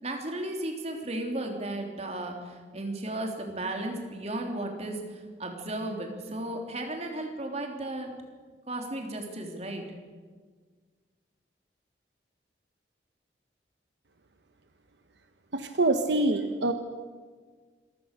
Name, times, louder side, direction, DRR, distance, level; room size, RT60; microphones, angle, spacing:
voice 1, 0.0-8.1 8.7-9.8, right 1 dB, 35° right, 3 dB, 3.1 m, -34 dB
voice 2, 15.5-16.7, right 2 dB, 75° right, 7 dB, 1.2 m, -25 dB
27.0 x 15.5 x 6.7 m, 1.5 s
head